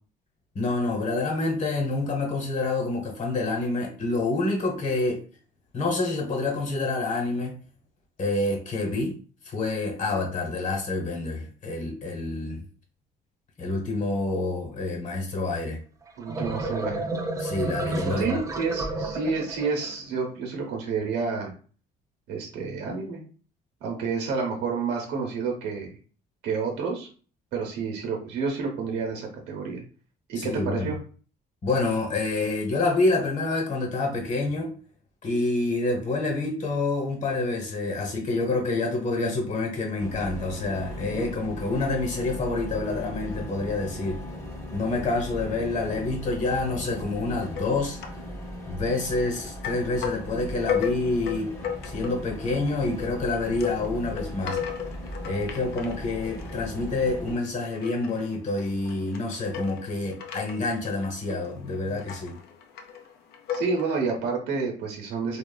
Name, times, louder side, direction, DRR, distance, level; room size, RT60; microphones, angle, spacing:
voice 1, 0.5-5.2 5.7-7.6 8.2-9.1 9.4-12.6 13.6-15.8 17.4-18.4 30.4-30.9 31.6-34.7 35.2-44.2 44.7-48.0 48.7-51.5 51.8-54.6 55.2-62.4, left 2 dB, 45° left, 2 dB, 1.0 m, -27 dB
sound 1, 16.1-19.9, right 2 dB, 20° right, 0.4 m, -31 dB
voice 2, 16.2-17.1 18.0-21.5 22.3-23.2 23.8-25.9 26.4-27.1 27.5-29.8 30.3-31.0 63.5-65.4, right 5 dB, 85° right, 1 dB, 0.8 m, -29 dB
sound 2, 40.0-57.4, equal, 15° left, 0.7 m, -38 dB
sound 3, 47.5-48.3 48.6-49.3 49.6-64.1, left 8 dB, 75° left, 0.5 m, -36 dB
3.0 x 2.3 x 2.2 m, 0.40 s
cardioid pair, 110°, 17 cm